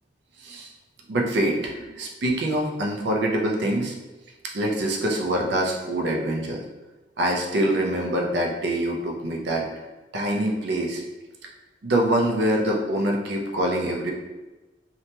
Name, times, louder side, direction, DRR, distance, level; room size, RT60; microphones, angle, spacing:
voice 1, 1.1-3.9 4.5-6.6 7.2-9.7 10.1-11.0 11.8-14.1, right 1 dB, 65° right, 1 dB, 0.5 m, -25 dB
2.8 x 2.2 x 2.8 m, 1.2 s
head